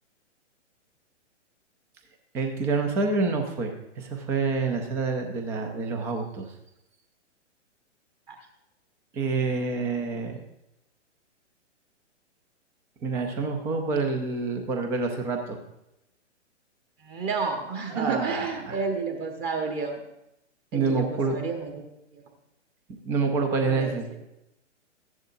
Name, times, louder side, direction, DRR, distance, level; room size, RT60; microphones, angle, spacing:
voice 1, 2.3-6.5 9.1-10.4 13.0-15.6 17.9-18.8 20.7-21.4 23.0-24.1, right 4 dB, 5° right, 5 dB, 0.4 m, -27 dB
voice 2, 17.0-20.0 20.7-22.2 23.6-24.0, right 4 dB, 25° right, 3 dB, 1.3 m, -31 dB
14.5 x 10.5 x 2.6 m, 0.86 s
hypercardioid pair, 125°, 37 cm